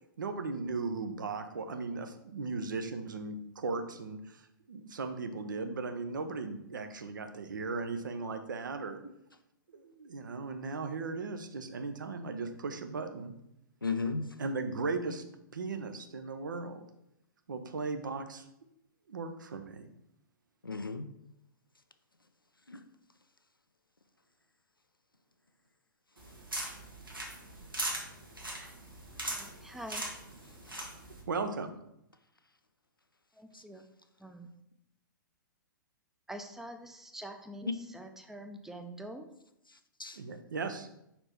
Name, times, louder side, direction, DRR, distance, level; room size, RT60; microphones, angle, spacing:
voice 1, 0.2-4.4 4.7-9.0 9.7-13.3 14.4-15.2 15.5-16.9 17.5-18.4 19.1-19.9 31.3-31.7 40.2-40.9, right 4 dB, 65° right, 0.7 m, -37 dB
voice 2, 13.8-14.4 20.6-21.1 22.7-22.8 30.7-30.9 33.5-33.6 39.7-40.2, left 4 dB, 90° left, 0.5 m, -36 dB
sound 1, 26.2-31.2, right 1 dB, 85° right, 1.7 m, -40 dB
voice 3, 29.2-30.0 33.4-33.8 34.2-34.5 36.3-39.3, right 1 dB, 5° right, 0.5 m, -45 dB
5.3 x 4.4 x 4.3 m
figure-of-eight pair, 110°, 11 cm